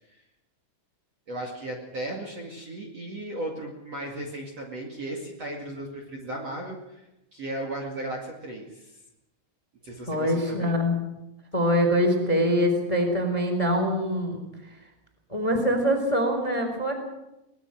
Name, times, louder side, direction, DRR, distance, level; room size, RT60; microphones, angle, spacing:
voice 1, 1.3-7.0 7.3-9.0 9.8-10.8, right 1 dB, 40° right, 0 dB, 2.9 m, -36 dB
voice 2, 10.1-11.0 11.5-14.4 15.3-16.9, equal, 10° left, 5 dB, 2.9 m, -24 dB
22.5 x 20.0 x 6.4 m, 0.92 s
omnidirectional pair, 5.3 m